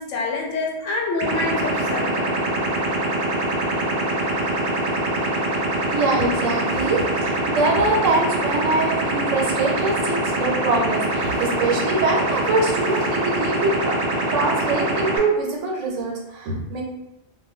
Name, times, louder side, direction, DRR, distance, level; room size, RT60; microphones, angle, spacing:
voice 1, 0.0-2.4, left 3 dB, 90° left, 0 dB, 0.9 m, -27 dB
sound 1, 1.2-15.2, right 1 dB, 60° right, 0.5 m, -24 dB
voice 2, 5.9-14.0 14.3-16.8, right 3 dB, 85° right, 0 dB, 1.0 m, -23 dB
2.1 x 2.1 x 3.4 m, 0.92 s
omnidirectional pair, 1.3 m